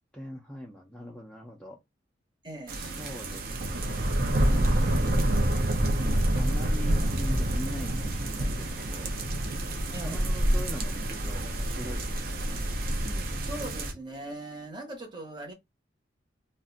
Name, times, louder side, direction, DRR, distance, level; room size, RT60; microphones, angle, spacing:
voice 1, 0.1-1.8 2.7-4.2 6.3-9.1 10.0-12.6 13.0-13.5, equal, 5° left, 0.4 m, -42 dB
voice 2, 2.4-2.8 9.9-10.2 13.4-15.5, right 1 dB, 25° right, 0.8 m, -40 dB
sound 1, 2.7-13.9, right 1 dB, 50° right, 0.5 m, -27 dB
2.5 x 2.1 x 3.8 m
head